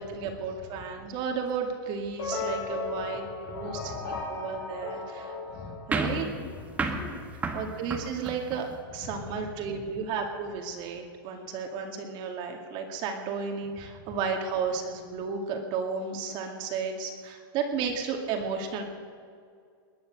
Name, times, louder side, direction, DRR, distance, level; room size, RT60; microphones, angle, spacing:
voice 1, 0.0-5.4 5.9-6.3 7.5-8.7 8.9-18.8, right 5 dB, 40° right, 3 dB, 2.2 m, -33 dB
sound 1, 2.2-6.5, left 3 dB, 75° left, 5.4 m, -36 dB
voice 2, 3.5-4.2 5.5-5.9 6.2-7.3 9.0-9.3 9.8-9.9 14.0-14.2, left 4 dB, 35° left, 4 dB, 2.9 m, -44 dB
sound 2, 5.9-8.8, right 3 dB, 10° right, 1.4 m, -32 dB
21.5 x 10.0 x 6.6 m, 2.2 s
supercardioid pair, 140°, 12 cm